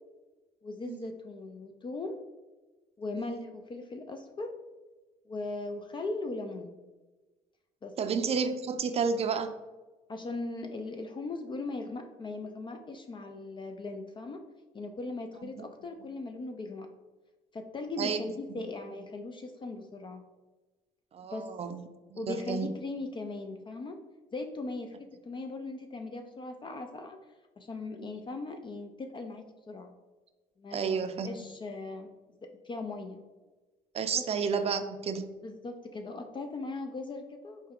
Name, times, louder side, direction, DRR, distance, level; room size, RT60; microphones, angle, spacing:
voice 1, 0.6-2.2 3.0-4.5 5.3-6.8 7.8-7.9 10.1-14.5 14.7-16.9 17.5-20.2 21.3-21.5 22.1-24.0 24.3-27.2 27.6-29.9 30.6-31.0 31.2-32.1 32.4-33.2 34.1-34.2 35.4-37.6, left 2 dB, 30° left, 6 dB, 0.4 m, -39 dB
voice 2, 8.0-9.5 15.6-15.7 18.0-18.2 21.1-22.7 28.0-28.1 30.7-31.3 33.9-35.3, right 6 dB, 40° right, 8 dB, 0.4 m, -31 dB
4.2 x 3.3 x 3.6 m, 1.2 s
cardioid pair, 100°, 15 cm